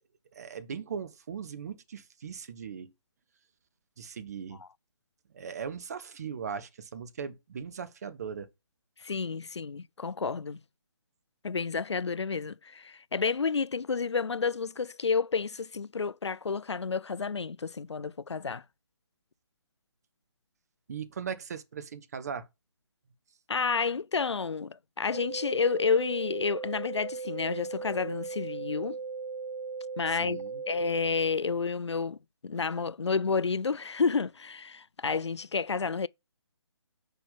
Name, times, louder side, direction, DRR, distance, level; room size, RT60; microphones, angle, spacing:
voice 1, 0.3-2.9 4.0-4.6 5.3-8.5 20.9-22.5 30.1-30.6, right 6 dB, 35° right, 0.9 m, -39 dB
voice 2, 9.0-10.6 11.4-18.6 23.5-29.0 30.0-32.2 32.4-36.1, left 5 dB, 70° left, 0.4 m, -30 dB
sound 1, 25.1-31.1, right 5 dB, 65° right, 0.6 m, -38 dB
5.4 x 4.4 x 5.5 m
figure-of-eight pair, 145°, 15 cm